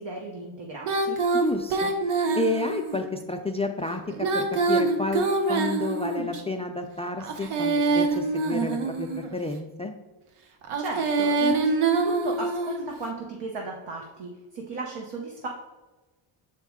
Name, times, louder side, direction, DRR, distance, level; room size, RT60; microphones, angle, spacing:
voice 1, 0.0-1.2 10.8-15.5, right 2 dB, 60° right, 0 dB, 1.0 m, -35 dB
Female singing, 0.8-3.0 4.1-6.4 7.2-9.4 10.6-12.9, right 3 dB, 80° right, 0.9 m, -25 dB
voice 2, 1.3-1.9 2.3-9.9, left 2 dB, 15° left, 5 dB, 0.4 m, -30 dB
6.4 x 4.5 x 3.6 m, 1.2 s
cardioid pair, 85°, 50 cm